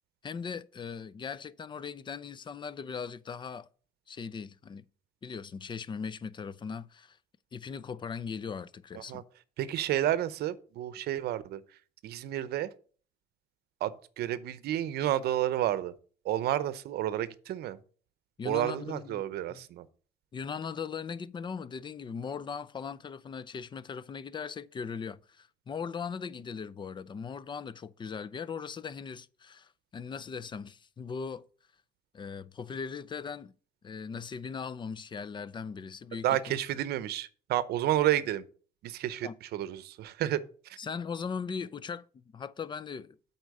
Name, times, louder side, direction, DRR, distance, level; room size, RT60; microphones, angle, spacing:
voice 1, 0.2-3.7 4.1-4.9 5.2-7.2 7.5-9.2 18.4-19.2 19.5-19.6 20.3-31.4 32.1-33.5 33.8-36.2 39.2-39.3 40.8-43.2, left 6 dB, 30° left, 0.5 m, -39 dB
voice 2, 9.6-11.6 12.0-12.7 13.8-15.9 16.2-17.8 18.4-19.9 36.2-38.4 38.8-40.8, right 12 dB, 70° right, 0.7 m, -31 dB
8.2 x 4.4 x 6.4 m
cardioid pair, 110°, 17 cm